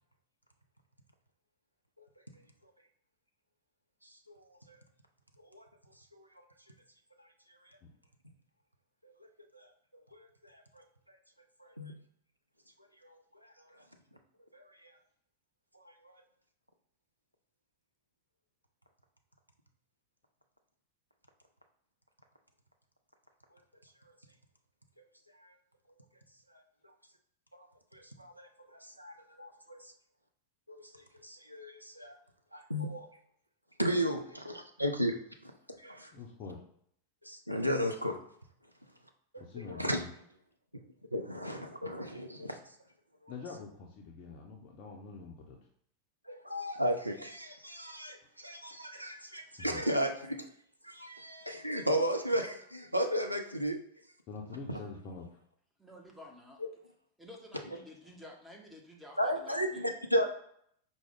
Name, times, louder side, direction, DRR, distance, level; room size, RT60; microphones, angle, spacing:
voice 1, 4.0-4.8 5.5-5.7 6.1-6.3 9.0-9.1 9.5-9.7 10.1-10.8 11.6-11.9 13.0-13.2 13.4-13.5 14.5-14.9 15.8-16.1 25.4-25.5 27.5-27.7 27.9-29.9 30.7-32.2 32.5-33.1 33.8-35.2 35.4-35.5 35.8-36.1 37.2-38.2 39.3-40.0 41.1-42.6 43.2-43.3 46.3-50.4 50.8-53.8 57.7-57.8 59.2-60.3, equal, 90° right, 4 dB, 0.4 m, -35 dB
voice 2, 36.1-36.6 39.4-40.1 43.3-45.6 49.6-49.8 54.3-55.3, left 4 dB, 40° left, -1 dB, 0.5 m, -45 dB
voice 3, 55.8-56.6 57.2-59.9, left 1 dB, 5° right, 0 dB, 0.8 m, -51 dB
4.7 x 2.1 x 3.5 m, 0.67 s
figure-of-eight pair, 90°, 0 cm